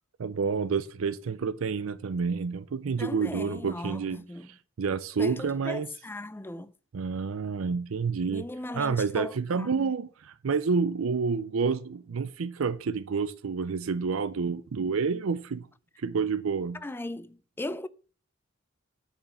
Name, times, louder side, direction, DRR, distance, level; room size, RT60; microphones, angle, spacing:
voice 1, 0.2-5.9 6.9-8.5 8.7-15.7 16.0-16.8, right 5 dB, 70° right, 0.5 m, -29 dB
voice 2, 3.0-4.5 5.2-6.7 8.2-9.9 16.8-17.9, left 1 dB, 10° left, 0.4 m, -38 dB
7.8 x 5.0 x 6.7 m
head